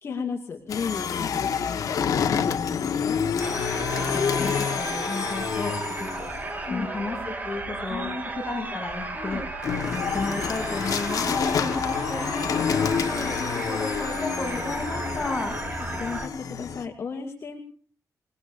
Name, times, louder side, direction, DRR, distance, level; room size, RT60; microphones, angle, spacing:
voice 1, 0.0-3.2 4.1-4.5 6.7-6.9 7.9-8.2 9.1-9.4 11.1-11.2 15.8-17.6, left 5 dB, 45° left, 1 dB, 2.4 m, -34 dB
sound 1, 0.7-6.5 9.6-16.8, left 7 dB, 65° left, 1.5 m, -28 dB
sound 2, 3.4-16.3, right 2 dB, 25° right, 2.6 m, -34 dB
voice 2, 3.6-6.3 6.6-8.1 8.4-9.4 9.9-15.5, left 3 dB, 15° left, 0 dB, 7.3 m, -33 dB
28.5 x 19.0 x 2.7 m, 0.44 s
wide cardioid pair, 155°, 6 cm